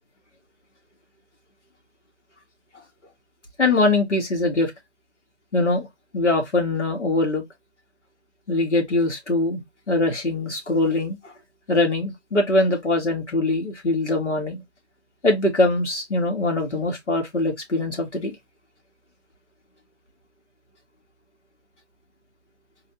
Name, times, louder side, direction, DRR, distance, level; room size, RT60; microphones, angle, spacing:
voice 1, 3.6-4.7 5.5-5.9 6.1-7.4 8.5-9.6 9.9-11.3 11.7-14.6 15.2-18.4, left 2 dB, 80° left, 2.0 m, -22 dB
4.0 x 3.1 x 2.5 m
figure-of-eight pair, 170°, 35 cm